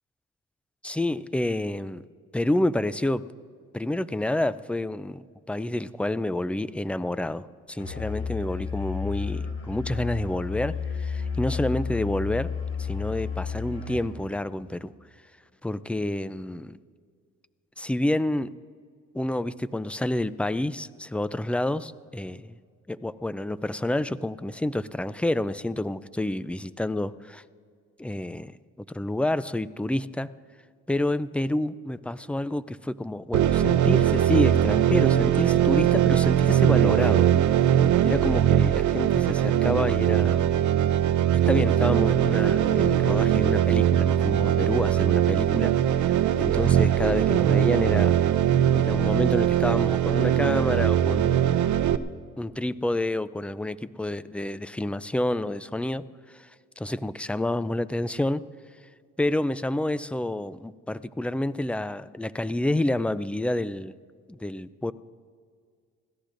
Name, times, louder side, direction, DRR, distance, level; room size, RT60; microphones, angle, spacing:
voice 1, 0.8-2.0 2.3-3.2 3.7-12.5 12.8-14.9 15.6-16.8 17.8-18.5 19.1-22.6 22.9-27.4 28.0-28.6 28.9-30.3 30.9-37.3 38.0-40.5 41.5-45.7 46.0-48.2 48.7-51.4 52.4-56.0 56.3-56.5 56.8-58.4 59.2-63.9 64.3-64.9, left 1 dB, 5° left, 16 dB, 0.3 m, -28 dB
Musical instrument, 7.8-14.2, left 6 dB, 50° left, 3.9 m, -32 dB
sound 1, 33.3-52.0, right 11 dB, 75° right, 0.7 m, -21 dB
25.5 x 16.5 x 2.6 m, 2.1 s
cardioid pair, 90°, 30 cm